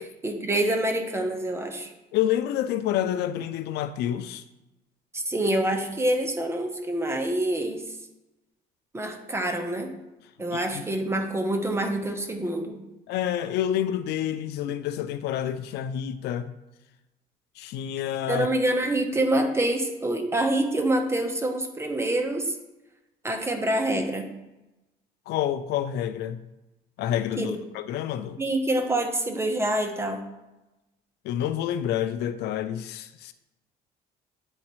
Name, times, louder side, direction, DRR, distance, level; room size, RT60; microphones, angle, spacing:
voice 1, 0.0-1.9 5.1-8.0 8.9-9.9 10.4-12.8 18.3-22.6 23.2-24.4 27.4-27.6 28.4-30.2, right 1 dB, 15° right, 0.9 m, -26 dB
voice 2, 2.1-4.4 10.5-10.8 13.1-16.5 17.6-18.5 25.3-26.4 27.0-28.4 31.2-33.3, left 11 dB, 75° left, 0.4 m, -28 dB
9.7 x 4.0 x 3.1 m
cardioid pair, 110°, 17 cm